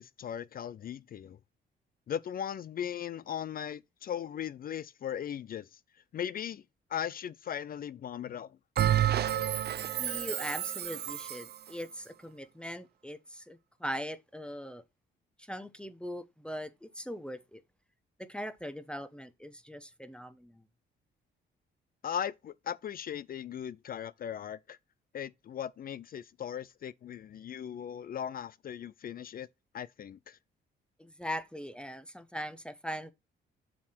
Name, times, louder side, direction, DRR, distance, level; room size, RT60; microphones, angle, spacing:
voice 1, 0.0-1.4 2.1-5.8 6.1-6.6 6.9-8.6 22.0-24.8 25.1-29.5 29.7-30.4, left 9 dB, 45° left, 0.4 m, -38 dB
Bell, 8.8-11.5, right 11 dB, 55° right, 0.6 m, -30 dB
voice 2, 10.0-14.8 15.4-17.6 18.2-20.6 31.0-33.1, equal, 5° left, 0.9 m, -40 dB
7.2 x 4.8 x 4.3 m
cardioid pair, 90°, 20 cm